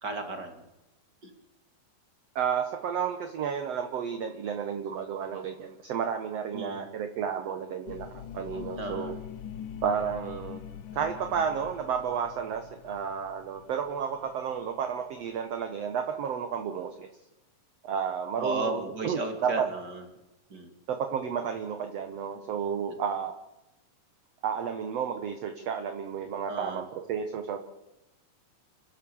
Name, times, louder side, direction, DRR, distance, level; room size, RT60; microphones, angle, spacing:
voice 1, 0.0-0.6 1.2-1.3 6.5-6.8 8.8-9.1 18.4-20.0 20.5-20.7 26.5-26.8, right 2 dB, 35° right, 5 dB, 2.7 m, -34 dB
voice 2, 2.4-9.1 9.8-17.1 17.8-19.6 20.9-23.3 24.4-27.7, right 7 dB, 60° right, 6 dB, 2.0 m, -32 dB
sound 1, 7.9-14.7 14.9-15.0, left 9 dB, 75° left, 2.5 m, -43 dB
30.0 x 12.5 x 7.1 m, 0.96 s
omnidirectional pair, 3.9 m